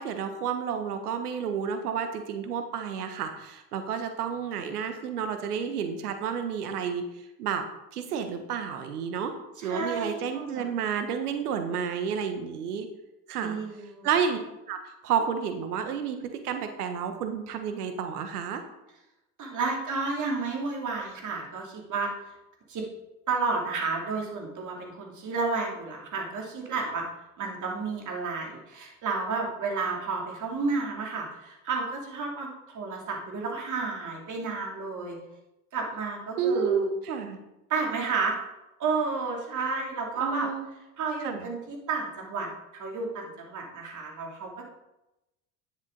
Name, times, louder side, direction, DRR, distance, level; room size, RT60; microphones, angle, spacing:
voice 1, 0.0-7.0 7.4-7.6 7.9-9.3 9.6-12.9 13.3-13.6 14.0-14.4 14.7-14.8 15.0-18.6 36.4-37.4 40.2-40.7 41.2-41.5, right 7 dB, 85° right, 7 dB, 1.3 m, -30 dB
voice 2, 9.6-10.7 13.4-14.1 19.4-22.1 22.7-22.9 23.3-27.1 27.4-35.2 35.7-36.9 37.7-38.4 38.8-40.5 41.0-44.6, right 4 dB, 40° right, 0 dB, 3.0 m, -31 dB
10.0 x 7.4 x 4.0 m, 0.94 s
hypercardioid pair, 75°, 45 cm